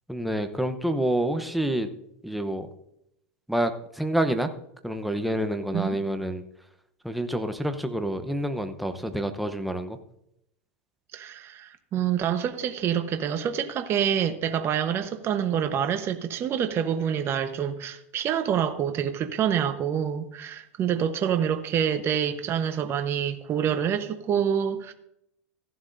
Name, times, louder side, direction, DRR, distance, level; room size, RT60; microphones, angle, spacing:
voice 1, 0.1-1.9 2.2-2.7 3.5-4.5 4.8-6.4 7.0-10.0, right 1 dB, ahead, 0.8 m, -28 dB
voice 2, 11.1-24.9, right 8 dB, 35° right, 1.0 m, -27 dB
15.0 x 11.5 x 2.6 m
hypercardioid pair, 115°, 7 cm